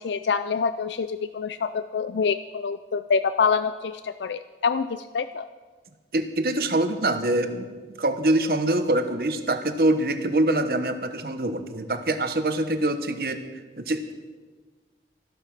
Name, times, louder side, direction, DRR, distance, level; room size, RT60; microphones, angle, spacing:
voice 1, 0.0-5.5, left 5 dB, 85° left, 12 dB, 0.4 m, -26 dB
voice 2, 6.1-13.4 13.8-14.1, right 1 dB, 55° right, 8 dB, 1.1 m, -24 dB
13.5 x 12.0 x 5.9 m, 1.4 s
head